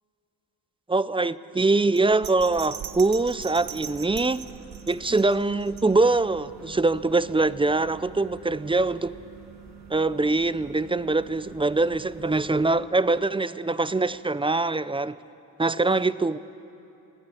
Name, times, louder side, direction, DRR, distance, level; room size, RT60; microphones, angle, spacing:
voice 1, 0.9-4.4 4.9-9.2 9.9-15.2 15.6-16.4, right 3 dB, 15° right, 0.4 m, -23 dB
Bell, 2.0-6.3 6.7-6.8, right 8 dB, 70° right, 1.0 m, -41 dB
sound 1, 2.5-12.7, right 6 dB, 45° right, 2.6 m, -47 dB
22.5 x 17.0 x 9.1 m
wide cardioid pair, 110°, 37 cm